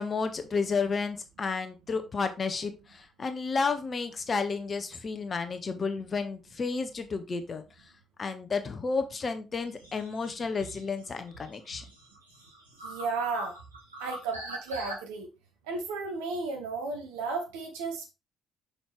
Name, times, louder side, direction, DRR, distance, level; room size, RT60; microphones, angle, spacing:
voice 1, 0.0-7.6 8.2-11.8, left 4 dB, 40° left, 8 dB, 1.2 m, -31 dB
sound 1, 9.7-15.0, right 1 dB, 90° right, 1.2 m, -43 dB
voice 2, 12.8-13.5 14.0-15.3 15.7-18.1, right 4 dB, 70° right, 3 dB, 1.6 m, -34 dB
6.2 x 5.8 x 3.4 m, 0.26 s
figure-of-eight pair, 45°, 0 cm